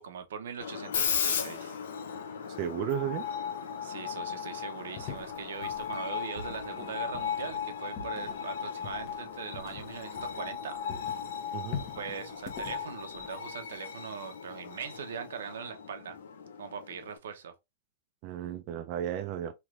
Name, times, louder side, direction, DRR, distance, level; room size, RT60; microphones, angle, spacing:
voice 1, 0.0-1.8 3.8-10.8 11.4-11.6 12.0-16.2 16.6-17.5, right 7 dB, 90° right, 0.7 m, -41 dB
Screech, 0.6-17.2, left 7 dB, 85° left, 0.6 m, -37 dB
voice 2, 2.6-3.3 11.5-11.8 18.2-19.5, right 10 dB, 35° right, 0.4 m, -33 dB
sound 1, 5.0-10.6 10.9-13.8, left 6 dB, 35° left, 0.7 m, -44 dB
3.2 x 2.9 x 2.4 m
supercardioid pair, 165°, 0 cm